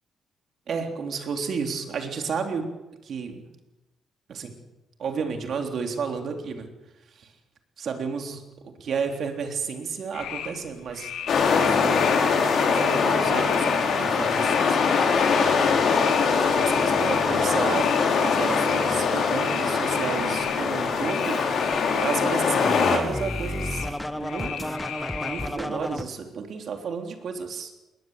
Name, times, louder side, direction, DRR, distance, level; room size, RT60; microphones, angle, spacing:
voice 1, 0.7-2.7 3.0-3.5 4.3-4.6 5.0-6.7 7.1-7.3 7.8-12.0 12.4-14.8 16.5-17.9 18.2-21.4 22.0-23.9 24.2-24.7 25.2-27.8, right 5 dB, 55° right, 4 dB, 3.5 m, -32 dB
sound 1, 10.1-25.5, left 8 dB, 90° left, 3.2 m, -37 dB
sound 2, 11.3-23.0, left 5 dB, 60° left, 5.2 m, -22 dB
Scratching (performance technique), 21.2-26.0, left 1 dB, 5° left, 1.3 m, -33 dB
20.5 x 19.5 x 8.1 m, 1.0 s
cardioid pair, 125°, 0 cm